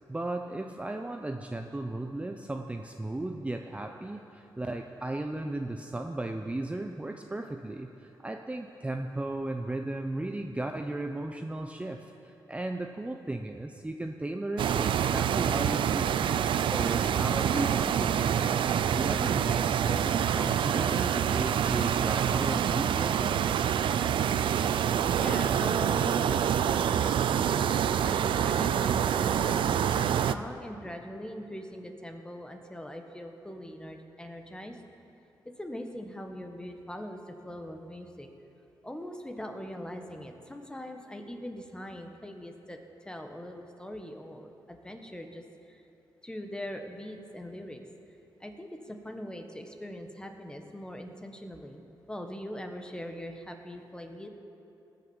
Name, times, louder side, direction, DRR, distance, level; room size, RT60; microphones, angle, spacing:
voice 1, 0.1-16.2 16.7-18.5 18.9-23.4, right 2 dB, 15° right, 4 dB, 0.7 m, -35 dB
sound 1, 14.6-30.3, right 9 dB, 80° right, 0.4 m, -26 dB
voice 2, 25.2-34.8 35.4-38.3 38.8-45.8 46.2-47.8 48.4-51.8 52.1-54.3, equal, 10° left, 4 dB, 1.4 m, -41 dB
19.5 x 6.7 x 7.2 m, 2.9 s
cardioid pair, 85°, 8 cm